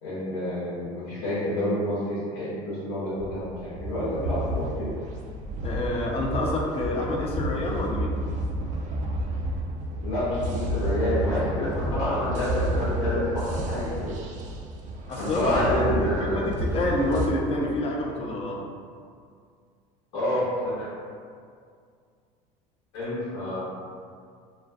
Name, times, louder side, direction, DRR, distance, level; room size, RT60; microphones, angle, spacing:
voice 1, 0.0-4.9 10.0-14.1 15.2-16.4 20.1-20.9 22.9-23.6, left 1 dB, 85° left, -10 dB, 0.8 m, -28 dB
sound 1, 3.2-17.3, right 1 dB, 45° right, 0.4 m, -31 dB
voice 2, 5.6-8.1 15.1-18.6, left 1 dB, 35° left, -1 dB, 0.5 m, -27 dB
2.4 x 2.2 x 2.5 m, 2.2 s
supercardioid pair, 95°, 17 cm